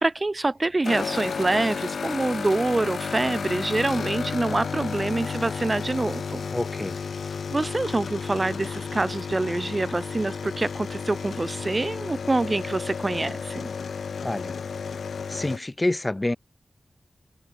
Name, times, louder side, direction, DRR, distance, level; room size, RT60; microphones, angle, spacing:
voice 1, 0.0-6.4 7.5-13.7, right 2 dB, 30° right, 1.0 m, -26 dB
sound 1, 0.8-15.6, left 5 dB, 90° left, 1.0 m, -32 dB
voice 2, 6.5-7.0 14.2-14.6 15.3-16.4, left 1 dB, 20° left, 4.4 m, -27 dB
wide cardioid pair, 115°, 0 cm